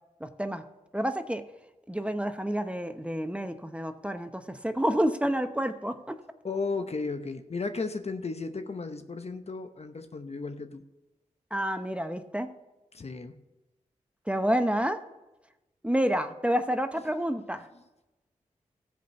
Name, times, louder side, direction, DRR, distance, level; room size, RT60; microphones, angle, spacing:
voice 1, 0.2-0.6 0.9-1.4 1.9-6.2 11.5-12.5 14.3-15.0 15.8-17.6, equal, 10° right, 8 dB, 0.8 m, -29 dB
voice 2, 6.4-10.8 12.9-13.4, left 4 dB, 45° left, 8 dB, 0.9 m, -34 dB
14.5 x 5.1 x 6.7 m, 1.0 s
cardioid pair, 40°, 14 cm